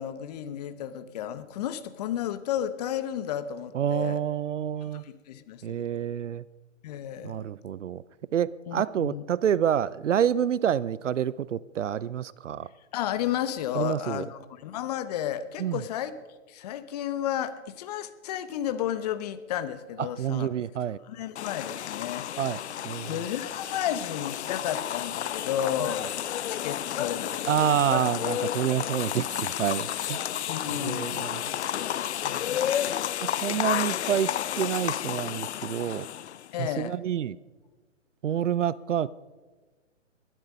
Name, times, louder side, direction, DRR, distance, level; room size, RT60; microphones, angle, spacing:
voice 1, 0.0-4.2 4.8-5.9 6.8-7.5 8.7-9.2 12.9-16.2 16.5-20.5 21.0-22.7 23.1-26.2 26.5-27.5 30.5-31.4 32.1-32.8 36.5-37.0, left 10 dB, 30° left, 1.0 m, -33 dB
voice 2, 3.7-5.0 5.6-6.4 7.2-8.0 8.3-12.7 13.7-14.2 15.6-15.8 20.2-21.0 22.4-23.1 27.5-30.2 30.8-31.4 33.2-36.1 36.6-37.4 38.2-39.1, right 9 dB, 70° right, 0.6 m, -28 dB
sound 1, 21.4-36.5, left 11 dB, 60° left, 0.5 m, -31 dB
20.0 x 12.5 x 5.4 m
figure-of-eight pair, 135°, 39 cm